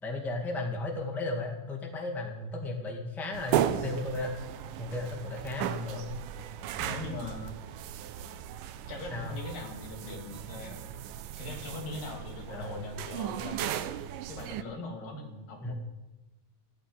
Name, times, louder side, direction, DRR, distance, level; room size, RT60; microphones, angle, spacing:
voice 1, 0.0-4.3 4.8-6.1 9.1-9.3 12.5-12.8 15.6-15.7, left 2 dB, ahead, 1 dB, 1.3 m, -35 dB
sound 1, 3.3-14.6, right 10 dB, 85° right, 2.3 m, -36 dB
voice 2, 5.6-6.2 6.8-7.5 8.9-10.8 11.4-13.9 14.3-15.7, left 3 dB, 85° left, 2 dB, 4.2 m, -41 dB
15.0 x 8.4 x 9.4 m, 1.1 s
omnidirectional pair, 3.8 m